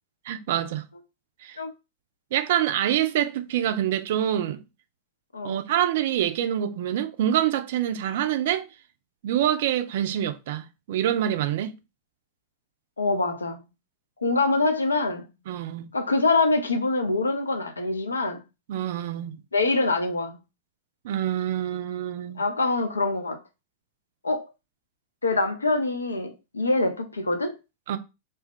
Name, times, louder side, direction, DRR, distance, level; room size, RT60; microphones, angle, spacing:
voice 1, 0.3-0.9 1.4-1.6 2.3-4.6 5.4-8.7 9.2-11.7 15.5-15.9 18.7-19.4 21.0-22.4 27.9-28.0, right 11 dB, 55° right, 0.3 m, -26 dB
voice 2, 13.0-13.7 14.2-15.3 15.9-18.4 19.5-20.4 22.4-23.4 24.2-24.5 25.2-27.6, left 3 dB, 75° left, 0.4 m, -24 dB
2.6 x 2.2 x 3.5 m
figure-of-eight pair, 90°, 0 cm